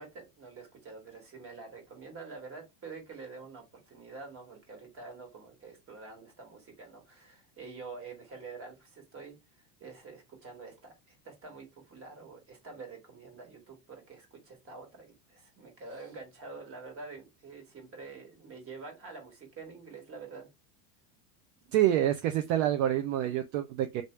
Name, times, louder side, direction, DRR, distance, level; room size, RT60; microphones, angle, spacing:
voice 1, 0.0-20.5 21.6-21.7, right 4 dB, 30° right, 1.6 m, -47 dB
voice 2, 21.7-24.0, right 12 dB, 60° right, 0.6 m, -27 dB
3.4 x 2.6 x 3.1 m
supercardioid pair, 125°, 45 cm